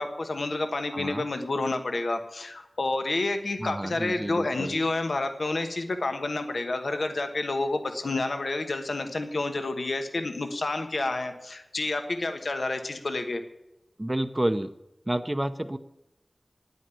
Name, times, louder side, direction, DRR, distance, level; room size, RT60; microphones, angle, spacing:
voice 1, 0.0-13.4, left 2 dB, 75° left, 7 dB, 1.2 m, -29 dB
voice 2, 0.9-1.3 3.6-4.8 14.0-14.7 15.1-15.8, right 1 dB, 20° right, 8 dB, 0.7 m, -29 dB
9.9 x 9.2 x 8.3 m, 0.91 s
wide cardioid pair, 50°, 0 cm